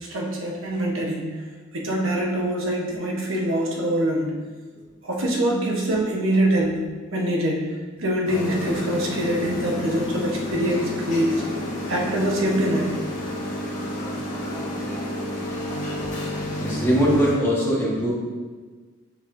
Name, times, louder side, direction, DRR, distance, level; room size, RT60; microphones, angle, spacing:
voice 1, 0.1-1.4 1.7-4.3 5.0-6.8 7.1-7.7 8.0-11.4 11.9-12.9, right 1 dB, 75° right, -2 dB, 1.1 m, -24 dB
sound 1, 8.3-17.4, left 1 dB, 35° left, 1.4 m, -30 dB
voice 2, 16.6-18.1, equal, 10° left, -6 dB, 1.3 m, -21 dB
7.0 x 5.4 x 2.6 m, 1.4 s
head